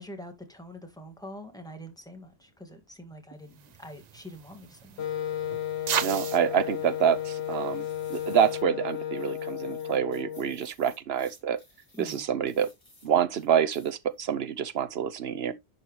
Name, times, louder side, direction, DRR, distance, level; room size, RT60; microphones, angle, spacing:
voice 1, 0.0-5.0 11.9-12.2, left 1 dB, 5° left, 1.8 m, -45 dB
sound 1, 3.5-8.6, right 8 dB, 50° right, 0.5 m, -37 dB
Wind instrument woodwind instrument, 5.0-10.6, left 11 dB, 80° left, 1.1 m, -33 dB
voice 2, 6.0-11.6 12.0-12.7 13.0-15.5, right 8 dB, 75° right, 0.9 m, -27 dB
sound 2, 7.7-8.6 8.9-13.1 13.3-14.2 14.5-14.7, left 2 dB, 60° left, 4.8 m, -57 dB
11.0 x 4.5 x 3.1 m
omnidirectional pair, 1.1 m